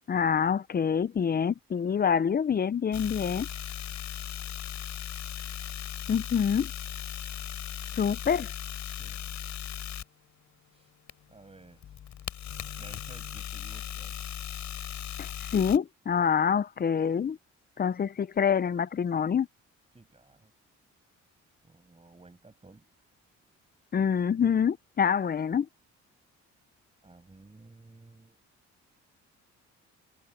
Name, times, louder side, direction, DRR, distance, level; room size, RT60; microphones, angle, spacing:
voice 1, 0.1-3.5 6.1-6.7 8.0-8.5 15.2-17.4 17.8-19.5 23.9-25.7, left 7 dB, 30° left, 0.6 m, -26 dB
sound 1, 2.9-10.0 11.1-15.8, left 10 dB, 65° left, 6.7 m, -38 dB
voice 2, 9.0-9.4 10.7-10.9 11.3-11.8 12.8-14.2 19.9-20.5 21.6-22.8 27.0-28.4, right 3 dB, 20° right, 7.1 m, -54 dB
cardioid pair, 90°, 30 cm